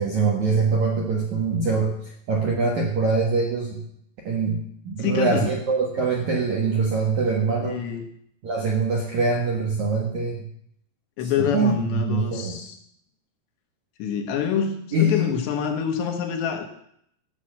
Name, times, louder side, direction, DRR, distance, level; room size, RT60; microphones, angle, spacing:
voice 1, 0.0-3.8 4.2-7.8 8.4-10.4 11.2-12.6 14.9-15.3, right 3 dB, 65° right, -1 dB, 1.9 m, -24 dB
voice 2, 5.0-5.5 7.6-8.0 11.2-12.8 14.0-16.7, left 7 dB, 70° left, 3 dB, 3.3 m, -26 dB
14.0 x 5.8 x 7.6 m, 0.70 s
omnidirectional pair, 5.5 m